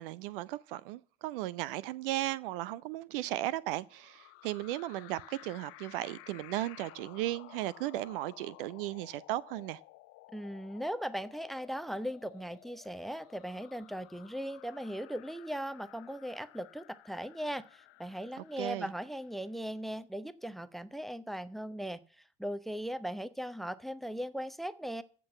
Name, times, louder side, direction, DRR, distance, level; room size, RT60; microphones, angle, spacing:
voice 1, 0.0-9.8 18.4-18.9, right 15 dB, 55° right, 0.6 m, -36 dB
sound 1, 3.9-19.6, left 19 dB, 45° left, 0.8 m, -55 dB
voice 2, 10.3-22.0 22.4-25.0, equal, ahead, 0.8 m, -38 dB
15.0 x 6.1 x 8.3 m
figure-of-eight pair, 70°, 32 cm